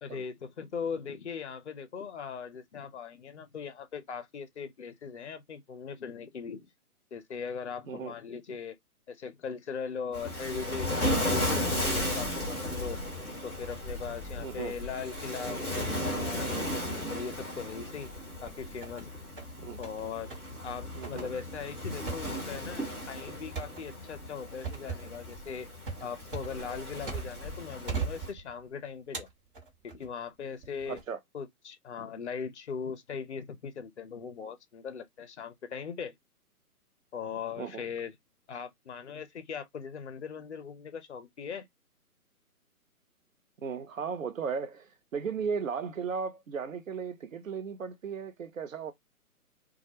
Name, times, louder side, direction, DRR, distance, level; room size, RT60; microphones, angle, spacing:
voice 1, 0.0-6.7 7.1-8.8 9.1-13.0 13.4-18.1 18.4-19.1 19.8-20.3 20.6-25.7 26.0-29.3 29.8-31.0 31.3-36.1 37.1-38.1 38.5-41.7, left 6 dB, 50° left, 0.5 m, -39 dB
Waves surf, 10.1-28.3, left 1 dB, ahead, 0.8 m, -35 dB
voice 2, 14.4-14.7 19.6-19.8 20.9-21.3 30.9-31.2 37.6-37.9 43.6-48.9, right 6 dB, 60° right, 0.6 m, -36 dB
sound 1, 18.1-19.0 19.4-20.0 20.3-20.5 21.0-27.5 27.9-28.7 29.1-30.1 30.6-31.0, right 5 dB, 35° right, 1.1 m, -39 dB
2.3 x 2.1 x 2.7 m
figure-of-eight pair, 140°, 46 cm